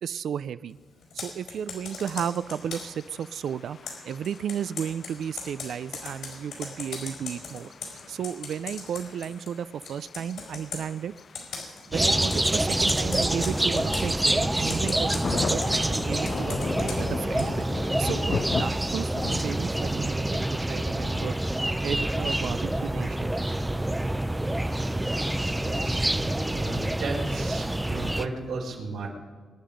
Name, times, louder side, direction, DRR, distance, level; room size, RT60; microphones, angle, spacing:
voice 1, 0.0-0.8 1.1-3.8 4.0-7.7 8.1-11.1 11.9-21.5 21.8-23.3, right 8 dB, 70° right, 14 dB, 0.4 m, -33 dB
Computer keyboard, 1.0-3.0 3.9-9.6 9.8-10.9 11.3-11.8 12.2-12.5 12.9-14.1 14.6-17.7, left 5 dB, 80° left, 4.8 m, -39 dB
sound 1, 1.9-19.6, left 5 dB, 40° left, 0.4 m, -39 dB
sound 2, 11.9-28.3, right 1 dB, 10° right, 0.5 m, -27 dB
voice 2, 25.6-26.1 26.5-29.1, right 3 dB, 85° right, -1 dB, 4.2 m, -35 dB
25.0 x 10.5 x 5.1 m, 1.5 s
wide cardioid pair, 150°, 0 cm